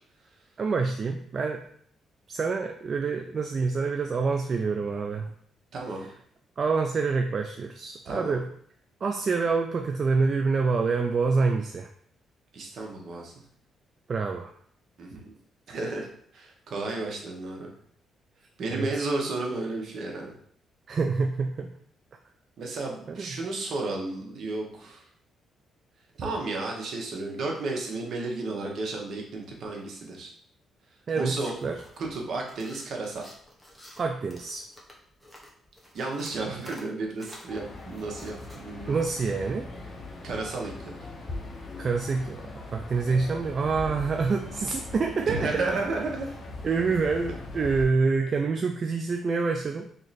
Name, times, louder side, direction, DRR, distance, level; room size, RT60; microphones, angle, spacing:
voice 1, 0.6-1.6 2.3-5.3 6.6-8.4 9.0-11.9 14.1-14.5 18.7-18.9 20.9-21.7 23.1-23.3 31.1-31.8 34.0-34.6 38.9-39.7 41.8-45.5 46.6-49.9, right 4 dB, 45° right, 4 dB, 0.3 m, -27 dB
voice 2, 5.7-6.1 8.0-8.4 12.5-13.4 15.0-15.3 15.7-16.1 16.3-17.7 18.6-20.3 22.6-25.0 26.2-30.3 31.2-31.6 32.0-33.3 35.9-39.0 40.2-40.9 45.3-46.3, right 3 dB, 60° right, 0 dB, 0.9 m, -32 dB
sound 1, 31.3-38.6, equal, 5° left, 0.9 m, -51 dB
sound 2, 37.5-47.9, left 2 dB, 40° left, 0.8 m, -40 dB
3.0 x 2.7 x 4.1 m, 0.62 s
cardioid pair, 90°, 0 cm